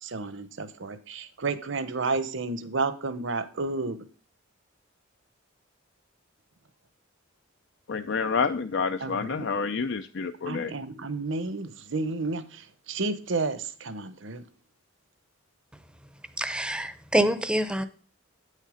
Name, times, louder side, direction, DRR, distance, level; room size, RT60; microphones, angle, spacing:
voice 1, 0.0-4.0 9.0-9.4 10.5-14.4, right 3 dB, 65° right, 0.9 m, -31 dB
voice 2, 7.9-10.7, left 5 dB, 60° left, 0.5 m, -28 dB
voice 3, 16.4-17.9, right 1 dB, 5° right, 0.6 m, -26 dB
9.3 x 6.6 x 5.0 m
head